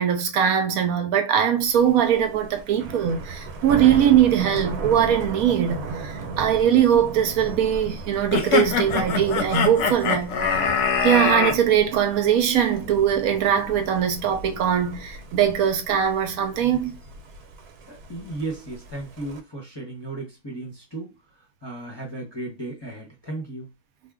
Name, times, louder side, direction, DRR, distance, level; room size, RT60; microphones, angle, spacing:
voice 1, 0.0-10.7 11.0-17.0, right 9 dB, 75° right, 1.0 m, -21 dB
Thunder, 1.6-19.4, right 3 dB, 90° right, 1.2 m, -37 dB
sound 1, 8.3-11.6, left 5 dB, 65° left, 0.8 m, -23 dB
voice 2, 17.9-21.2 21.6-23.7, right 2 dB, 25° left, 0.6 m, -35 dB
2.8 x 2.0 x 3.5 m
omnidirectional pair, 1.6 m